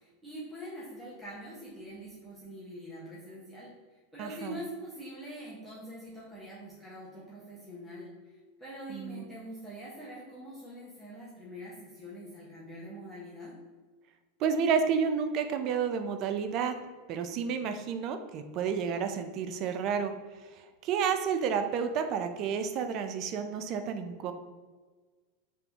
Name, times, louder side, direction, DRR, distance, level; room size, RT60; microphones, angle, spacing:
voice 1, 0.0-3.7 4.1-8.1 8.6-13.5, equal, 5° right, -8 dB, 0.8 m, -44 dB
voice 2, 4.2-4.6 8.9-9.2 14.4-16.7 17.1-20.1 20.5-24.3, right 6 dB, 45° right, 8 dB, 0.3 m, -30 dB
3.4 x 2.4 x 2.8 m, 1.4 s
hypercardioid pair, 115°, 0 cm